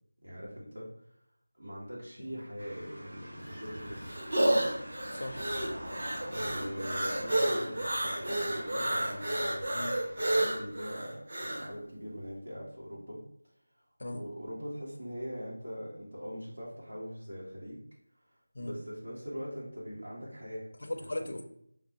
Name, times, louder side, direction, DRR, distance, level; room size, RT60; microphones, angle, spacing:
voice 1, 0.2-0.9 1.5-4.2 6.3-9.8 10.2-13.2 14.1-17.8 18.2-20.7 21.2-21.3, equal, 85° right, -6 dB, 1.1 m, -42 dB
sound 1, 2.6-10.5, equal, 65° right, 1.3 m, -45 dB
sound 2, 3.4-11.7, right 1 dB, 35° right, 0.5 m, -31 dB
voice 2, 5.1-5.5 9.7-10.0 14.0-14.2 18.5-18.8 20.8-21.4, left 1 dB, 45° left, 4 dB, 0.4 m, -38 dB
5.1 x 2.0 x 2.7 m, 0.72 s
figure-of-eight pair, 180°, 0 cm